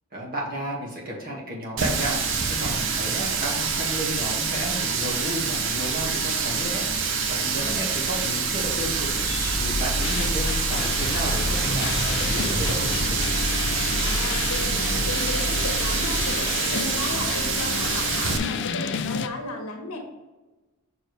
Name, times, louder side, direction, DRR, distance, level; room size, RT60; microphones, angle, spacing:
voice 1, 0.1-2.2 2.5-13.2, equal, 40° right, -3 dB, 1.7 m, -33 dB
Water tap faucet, 1.8-18.4, right 5 dB, 55° right, 0.8 m, -26 dB
sound 1, 8.8-16.3, left 1 dB, 40° left, 1.2 m, -30 dB
sound 2, 10.0-19.3, left 7 dB, 55° left, 0.4 m, -32 dB
voice 2, 14.0-20.0, left 1 dB, 70° left, 1 dB, 1.3 m, -34 dB
6.2 x 4.7 x 3.2 m, 1.1 s
head